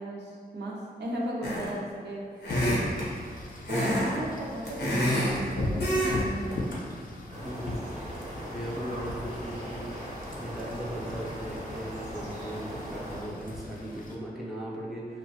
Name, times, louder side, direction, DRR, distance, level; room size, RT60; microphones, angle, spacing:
voice 1, 0.0-2.2 3.7-6.8, right 1 dB, 90° right, -4 dB, 0.5 m, -35 dB
sound 1, 1.4-1.8 2.4-3.1 3.7-4.1 4.4-5.4 5.8-6.2 6.5-6.7, equal, 85° left, 0.7 m, -27 dB
Wind / Rain, 2.5-14.1, left 2 dB, 55° left, 0.4 m, -38 dB
sound 2, 7.3-13.2, equal, 45° right, 0.6 m, -39 dB
voice 2, 7.4-7.8 8.5-9.8 10.4-15.2, right 1 dB, ahead, -6 dB, 0.5 m, -37 dB
2.9 x 2.1 x 2.7 m, 2.1 s
wide cardioid pair, 80°, 17 cm